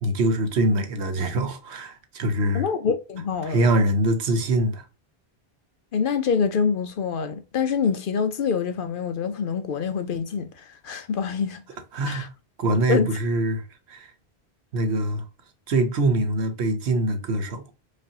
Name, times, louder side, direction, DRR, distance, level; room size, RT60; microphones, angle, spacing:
voice 1, 0.0-2.6 3.4-4.8 11.9-12.3 12.6-13.6 13.9-14.1 14.7-15.2 15.7-17.7, right 1 dB, 90° right, 1.1 m, -23 dB
voice 2, 2.5-3.7 5.9-11.6 12.1-12.3 12.9-13.2, left 6 dB, 60° left, 0.7 m, -26 dB
5.1 x 2.5 x 2.6 m
omnidirectional pair, 1.1 m